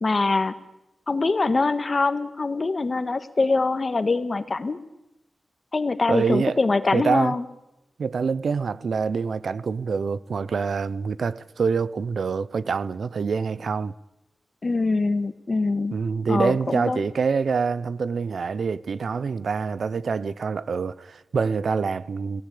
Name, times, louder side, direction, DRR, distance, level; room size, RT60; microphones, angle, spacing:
voice 1, 0.0-0.5 1.1-4.8 5.7-7.4 14.6-15.9 16.3-17.0, left 3 dB, 40° left, 1.6 m, -23 dB
voice 2, 6.1-6.6 6.9-7.4 8.0-13.9 15.9-22.4, right 5 dB, 80° right, 0.8 m, -26 dB
27.5 x 17.5 x 8.6 m
wide cardioid pair, 120°, 0 cm